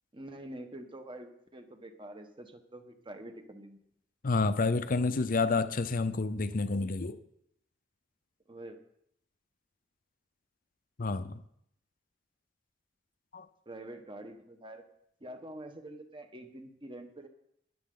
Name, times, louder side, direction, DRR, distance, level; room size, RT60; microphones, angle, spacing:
voice 1, 0.1-3.8 8.5-8.8 13.7-14.8 15.2-17.3, right 1 dB, 25° right, 6 dB, 1.3 m, -46 dB
voice 2, 4.2-7.2 11.0-11.4 13.3-13.5, left 3 dB, 50° left, 11 dB, 0.6 m, -29 dB
21.5 x 7.6 x 3.9 m, 0.73 s
head